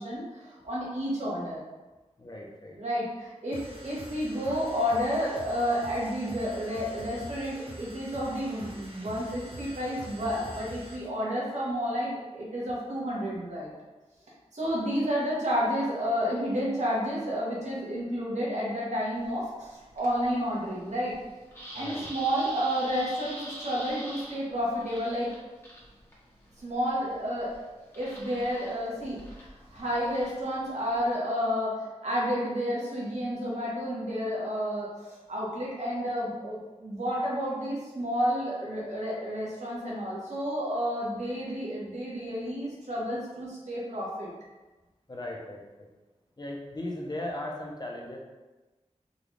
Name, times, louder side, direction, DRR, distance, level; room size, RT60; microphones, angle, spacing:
voice 1, 0.0-1.6 2.8-13.7 14.5-21.1 21.7-25.3 26.6-27.6 27.9-44.3, equal, 75° right, -6 dB, 1.1 m, -31 dB
voice 2, 2.2-2.8 21.7-22.0 45.1-45.6 46.4-48.2, left 1 dB, 35° left, -1 dB, 0.7 m, -37 dB
sound 1, 3.5-11.1, right 1 dB, 50° right, 0.6 m, -45 dB
sound 2, 19.2-31.1, equal, 20° left, 1.1 m, -46 dB
3.8 x 2.3 x 3.2 m, 1.2 s
wide cardioid pair, 55°, 12 cm